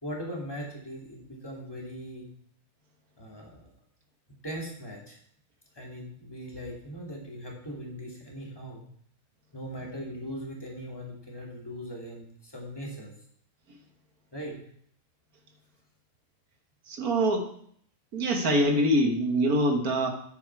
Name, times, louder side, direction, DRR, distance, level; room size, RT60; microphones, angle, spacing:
voice 1, 0.0-2.3 3.2-3.5 4.4-5.2 5.7-8.8 9.5-13.1 14.3-14.6, equal, 15° left, -3 dB, 2.8 m, -39 dB
voice 2, 16.9-17.5 18.1-20.1, right 1 dB, 80° right, 4 dB, 1.9 m, -24 dB
9.6 x 8.3 x 4.7 m, 0.64 s
omnidirectional pair, 1.5 m